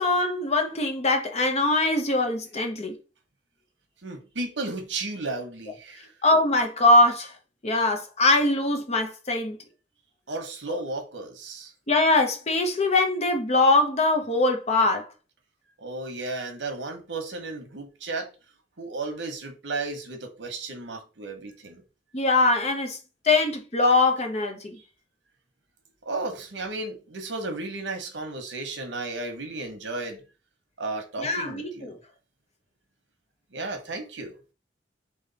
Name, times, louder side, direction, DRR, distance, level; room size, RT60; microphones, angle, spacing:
voice 1, 0.0-3.0 6.2-7.3 7.6-9.6 10.7-10.8 11.9-15.1 22.1-23.0 23.2-24.8 31.2-32.0, left 2 dB, 35° left, 0.9 m, -22 dB
voice 2, 4.0-6.1 10.3-11.7 15.8-18.3 18.8-21.8 26.0-30.2 30.8-31.9 33.5-34.3, right 3 dB, 80° right, 1.1 m, -34 dB
3.6 x 3.3 x 4.1 m
head